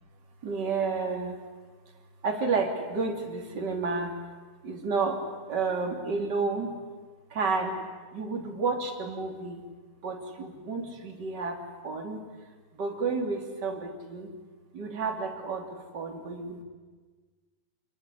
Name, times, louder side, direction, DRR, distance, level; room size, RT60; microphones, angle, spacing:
voice 1, 0.4-1.4 2.2-4.1 4.6-5.2 5.5-6.8 7.3-7.8 8.1-9.6 10.0-11.6 11.8-12.2 12.8-14.3 14.7-16.6, right 4 dB, 30° right, 2 dB, 3.3 m, -31 dB
26.0 x 22.5 x 10.0 m, 1.4 s
omnidirectional pair, 4.3 m